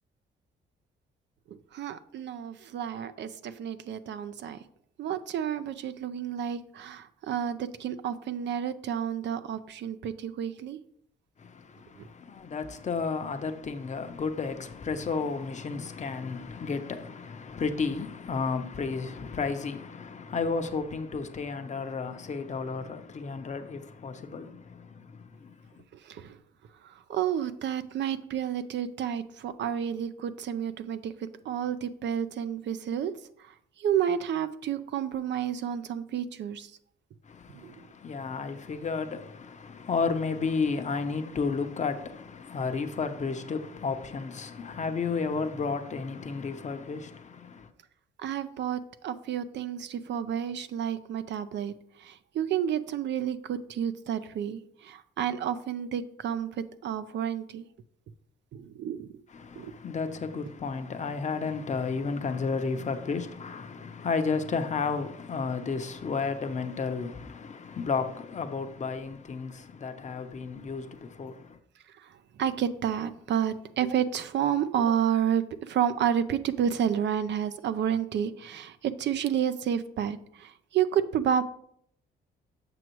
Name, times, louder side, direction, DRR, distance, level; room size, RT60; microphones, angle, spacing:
voice 1, 1.5-4.6 5.0-10.8 12.0-12.1 26.0-26.4 26.8-33.1 33.4-36.7 37.5-37.8 48.2-51.7 52.0-56.5 56.8-57.7 58.5-59.1 59.6-59.7 72.0-72.1 72.4-81.4, right 9 dB, 65° right, 0.5 m, -30 dB
voice 2, 11.4-25.8 37.2-47.7 59.3-71.6, left 4 dB, 35° left, 0.7 m, -32 dB
7.8 x 6.0 x 3.0 m
cardioid pair, 90°, 20 cm